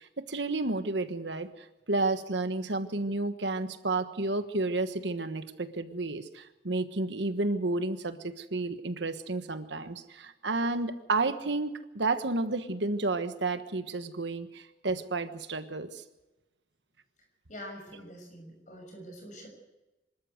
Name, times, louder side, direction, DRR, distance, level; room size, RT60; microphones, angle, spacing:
voice 1, 0.0-16.0, right 2 dB, 70° right, 9 dB, 1.3 m, -31 dB
voice 2, 17.5-19.5, equal, 40° left, 3 dB, 6.3 m, -45 dB
25.0 x 13.5 x 8.0 m, 1.0 s
head